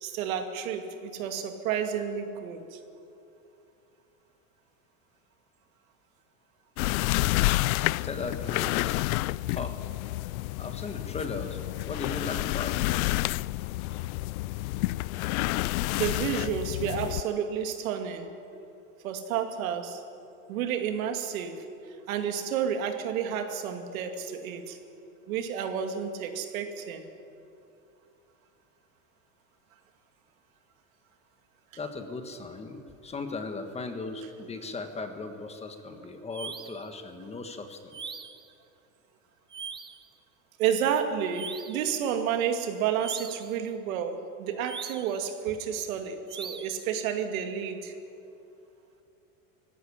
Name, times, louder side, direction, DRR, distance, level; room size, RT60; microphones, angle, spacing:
voice 1, 0.0-2.8 15.9-18.3 19.0-20.0 20.5-21.6 22.1-24.8 25.3-27.1 40.6-47.9, right 8 dB, 75° right, 6 dB, 2.4 m, -30 dB
sound 1, 6.8-17.2, left 19 dB, 80° left, 0.5 m, -29 dB
voice 2, 7.8-9.0 9.5-9.8 10.6-11.6 11.8-12.8 31.8-38.2, left 3 dB, 15° left, 7 dB, 1.4 m, -37 dB
sound 2, 36.3-36.9 37.9-38.5 39.5-40.1 41.3-41.9 43.0-43.5 44.6-45.2 46.3-46.8, right 6 dB, 10° right, 0.6 m, -41 dB
18.0 x 16.0 x 9.9 m, 2.6 s
supercardioid pair, 140°, 41 cm